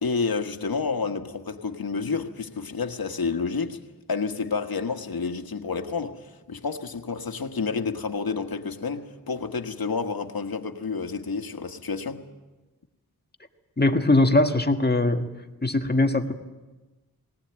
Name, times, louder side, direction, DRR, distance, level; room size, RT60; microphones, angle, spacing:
voice 1, 0.0-3.8 4.1-12.2, left 4 dB, 75° left, 1.5 m, -29 dB
voice 2, 13.8-15.3 15.6-16.3, left 2 dB, 25° left, 1.7 m, -21 dB
19.5 x 18.5 x 8.9 m
wide cardioid pair, 60°, 36 cm